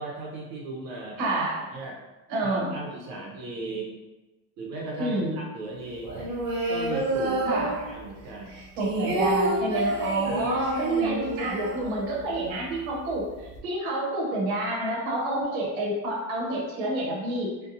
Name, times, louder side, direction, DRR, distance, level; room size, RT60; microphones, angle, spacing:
voice 1, 0.0-1.3 1.7-2.0 2.4-3.9 4.6-6.1 6.7-7.4 7.9-8.6 10.2-10.7, right 2 dB, 85° right, -2 dB, 0.8 m, -37 dB
voice 2, 1.2-1.7 2.3-2.8 5.0-5.4 7.4-7.8 8.8-17.5, right 2 dB, 55° right, -3 dB, 0.9 m, -28 dB
sound 1, 6.0-8.2 8.5-12.4 12.7-12.8 13.1-13.6, right 1 dB, 35° right, 0.5 m, -29 dB
2.5 x 2.3 x 2.6 m, 1.1 s
supercardioid pair, 160°, 49 cm